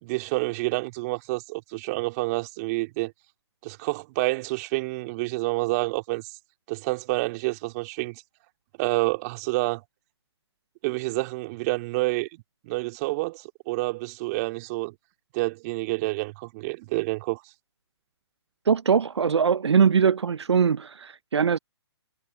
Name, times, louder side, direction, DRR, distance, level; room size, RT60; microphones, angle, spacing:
voice 1, 0.0-3.1 3.6-6.3 6.7-8.2 8.8-9.8 10.8-14.9 15.3-17.4, right 23 dB, 35° right, 2.3 m, -28 dB
voice 2, 18.7-21.6, right 6 dB, 75° right, 0.8 m, -21 dB
figure-of-eight pair, 130°, 14 cm